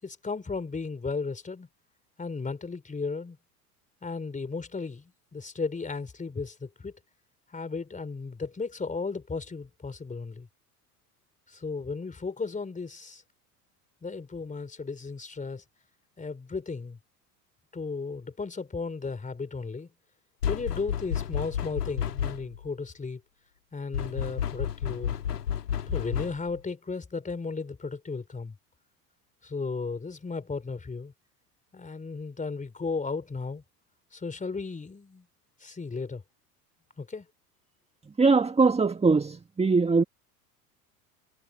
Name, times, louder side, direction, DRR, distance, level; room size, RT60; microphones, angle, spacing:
voice 1, 0.0-1.7 2.2-3.4 4.0-6.9 7.5-10.5 11.5-13.2 14.0-15.6 16.2-17.0 17.7-19.9 20.5-23.2 23.7-25.2 25.9-28.6 29.4-31.1 31.7-33.6 34.1-35.3 35.6-36.2 37.0-37.3, left 4 dB, 15° left, 4.0 m, -35 dB
sound 1, 20.4-22.7 23.9-26.6, left 9 dB, 80° left, 1.7 m, -31 dB
voice 2, 38.2-40.0, right 4 dB, 15° right, 1.8 m, -22 dB
figure-of-eight pair, 75°, 46 cm